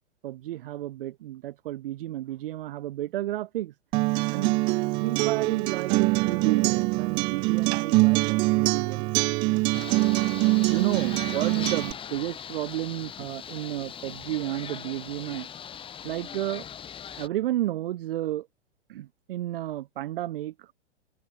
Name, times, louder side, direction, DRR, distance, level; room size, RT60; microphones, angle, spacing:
voice 1, 0.2-3.7 4.3-4.6 5.0-9.1 9.5-9.7 10.7-15.5 16.0-16.7 17.2-18.5 18.9-20.7, right 14 dB, 50° right, 7.3 m, -32 dB
Acoustic guitar, 3.9-11.9, right 25 dB, 15° right, 0.4 m, -24 dB
sound 1, 9.7-17.3, left 8 dB, 15° left, 1.7 m, -40 dB
figure-of-eight pair, 105°, 36 cm